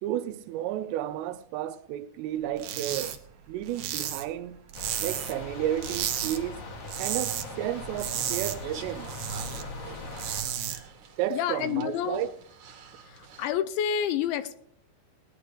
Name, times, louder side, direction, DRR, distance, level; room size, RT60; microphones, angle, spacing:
voice 1, 0.0-3.2 3.5-4.6 5.0-6.6 7.0-9.1 11.2-12.3, right 12 dB, 90° right, 3.3 m, -32 dB
sound 1, 2.6-3.2 3.4-5.5 5.8-6.4 6.7-7.5 7.8-9.6 10.0-10.8, right 10 dB, 70° right, 2.4 m, -33 dB
sound 2, 4.7-10.4, left 2 dB, 55° left, 1.6 m, -40 dB
sound 3, 7.1-13.5, right 6 dB, 55° right, 2.3 m, -48 dB
voice 2, 11.3-12.3 13.0-14.6, left 9 dB, 80° left, 2.8 m, -29 dB
19.0 x 10.0 x 5.0 m
omnidirectional pair, 5.6 m